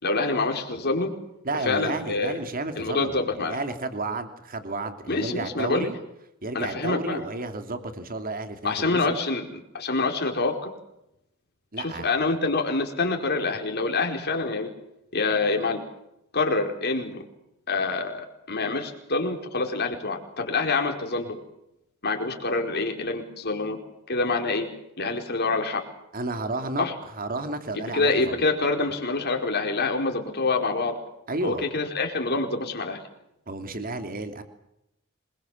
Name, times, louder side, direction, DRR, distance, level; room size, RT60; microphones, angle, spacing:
voice 1, 0.0-1.1 1.6-2.4 2.8-3.6 5.1-5.9 6.5-7.2 8.6-10.7 11.8-14.7 15.1-15.8 16.3-17.2 17.7-21.4 22.0-23.8 24.1-24.7 25.0-25.8 26.8-26.9 27.7-31.0 31.4-33.0, left 3 dB, 50° left, 3 dB, 4.7 m, -26 dB
voice 2, 1.4-5.9 6.4-9.2 11.7-12.1 26.1-28.4 31.3-31.6 33.5-34.4, right 2 dB, 45° right, 7 dB, 2.9 m, -32 dB
26.5 x 22.0 x 7.4 m, 0.84 s
head